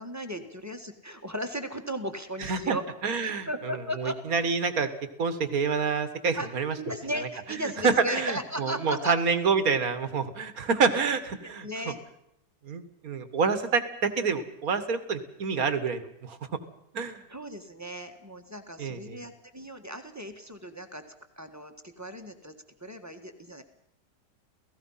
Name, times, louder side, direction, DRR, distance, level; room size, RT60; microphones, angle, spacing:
voice 1, 0.0-2.8 3.2-4.2 6.4-6.5 6.8-9.1 11.4-12.0 17.3-21.0 21.4-22.5 22.8-23.6, equal, 10° right, 6 dB, 1.6 m, -36 dB
voice 2, 2.4-2.8 3.0-4.9 5.2-6.8 7.8-11.7 12.7-16.4 16.9-17.2 18.8-19.2, right 5 dB, 55° right, 11 dB, 2.0 m, -27 dB
29.0 x 17.0 x 5.7 m, 0.77 s
omnidirectional pair, 1.9 m